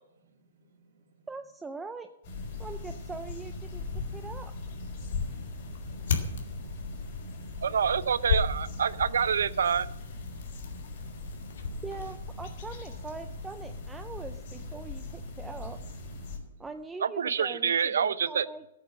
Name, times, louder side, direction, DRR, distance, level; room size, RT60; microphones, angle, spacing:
voice 1, 0.3-1.2 4.0-4.3 5.0-7.5 10.5-11.5 16.5-16.7, right 3 dB, 55° right, -3 dB, 4.3 m, -65 dB
voice 2, 1.3-2.1 2.6-3.8 4.1-4.5 11.8-15.8 16.6-18.6, right 4 dB, 5° right, 7 dB, 0.4 m, -42 dB
sound 1, 2.2-16.4, left 3 dB, 40° left, 4.2 m, -39 dB
sound 2, 4.5-12.5, left 5 dB, 70° left, 2.3 m, -36 dB
voice 3, 7.6-9.9 17.0-18.5, right 7 dB, 85° right, 16 dB, 0.7 m, -27 dB
14.5 x 8.6 x 6.4 m, 0.89 s
hypercardioid pair, 170°, 0 cm